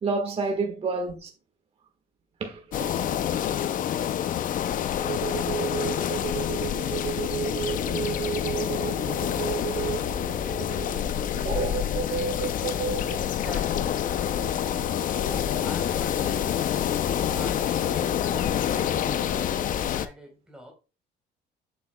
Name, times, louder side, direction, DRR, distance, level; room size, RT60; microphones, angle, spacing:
voice 1, 0.0-1.3 2.4-3.6 8.0-9.1 11.4-11.8 12.2-12.3 12.8-13.2 14.9-15.0 17.4-17.5, right 3 dB, 35° right, 1.4 m, -33 dB
sound 1, 2.7-20.1, left 10 dB, 55° left, 0.6 m, -27 dB
sound 2, 4.9-13.2 13.7-16.6 17.0-19.4, right 9 dB, 80° right, 2.1 m, -34 dB
voice 2, 13.2-13.9 15.0-16.9 17.3-20.7, left 1 dB, 5° right, 3.9 m, -44 dB
8.1 x 6.9 x 2.2 m
cardioid pair, 110°, 17 cm